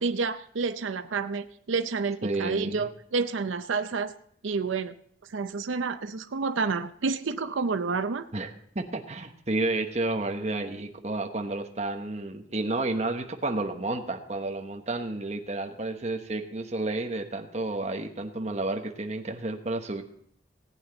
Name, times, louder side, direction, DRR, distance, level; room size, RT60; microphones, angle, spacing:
voice 1, 0.0-4.1 4.4-4.9 5.3-8.2, right 4 dB, 85° right, 9 dB, 0.6 m, -29 dB
voice 2, 2.2-2.9 8.3-8.5 8.7-20.0, right 2 dB, 35° right, 4 dB, 1.1 m, -31 dB
18.0 x 8.9 x 3.9 m, 0.66 s
head